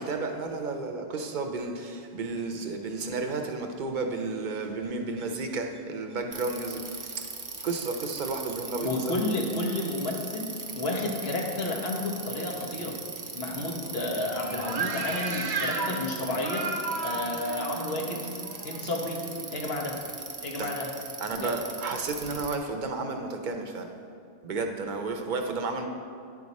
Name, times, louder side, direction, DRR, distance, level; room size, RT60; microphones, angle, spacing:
voice 1, 0.0-7.3 7.6-8.9 20.6-20.7 21.2-23.9 24.4-25.9, right 3 dB, 55° right, 4 dB, 0.8 m, -32 dB
Bicycle, 6.3-22.5, right 4 dB, 30° right, 0.4 m, -40 dB
voice 2, 8.8-13.0 13.3-16.7 17.0-18.3 18.6-19.2 19.5-20.0 20.4-20.9 21.3-21.5, left 2 dB, 75° left, 0 dB, 1.2 m, -31 dB
sound 1, 13.5-20.0, right 4 dB, 85° right, 1.0 m, -35 dB
9.6 x 4.9 x 4.1 m, 2.3 s
omnidirectional pair, 1.0 m